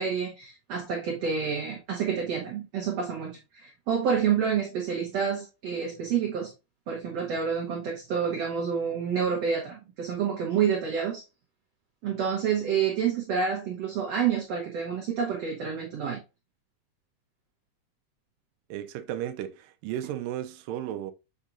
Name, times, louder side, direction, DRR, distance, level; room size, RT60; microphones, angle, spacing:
voice 1, 0.0-6.5 6.9-11.2 12.0-16.2, right 7 dB, 60° right, 1.8 m, -28 dB
voice 2, 18.7-21.1, right 11 dB, 85° right, 2.2 m, -34 dB
7.3 x 5.0 x 2.6 m
omnidirectional pair, 4.0 m